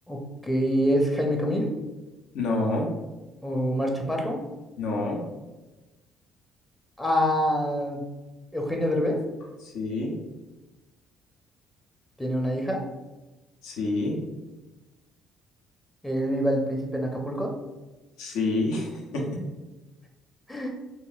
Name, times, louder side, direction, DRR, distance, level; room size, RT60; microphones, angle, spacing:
voice 1, 0.1-1.7 3.4-4.4 7.0-8.0 8.5-9.2 12.2-12.8 16.0-17.5 20.5-20.7, equal, 10° left, 0 dB, 0.6 m, -26 dB
voice 2, 2.3-2.9 4.8-5.2 9.6-10.1 13.6-14.2 18.2-19.3, left 2 dB, 75° left, 0 dB, 0.6 m, -27 dB
2.9 x 2.6 x 2.3 m, 1.1 s
hypercardioid pair, 55°, 0 cm